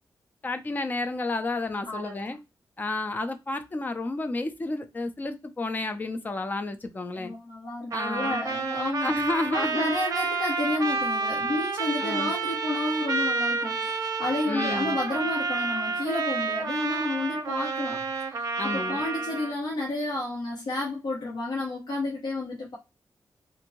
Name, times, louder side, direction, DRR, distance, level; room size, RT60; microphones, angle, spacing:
voice 1, 0.4-2.4 2.8-7.3 7.9-8.4 9.0-9.9 12.0-12.3 14.5-15.0 18.6-19.0, left 2 dB, 25° left, 0.4 m, -31 dB
voice 2, 1.8-2.3 7.1-9.1 9.5-18.0 18.3-22.8, left 2 dB, 70° left, 0.8 m, -31 dB
Trumpet, 7.9-19.5, right 4 dB, 55° right, 0.6 m, -29 dB
2.6 x 2.6 x 2.9 m
wide cardioid pair, 125°, 7 cm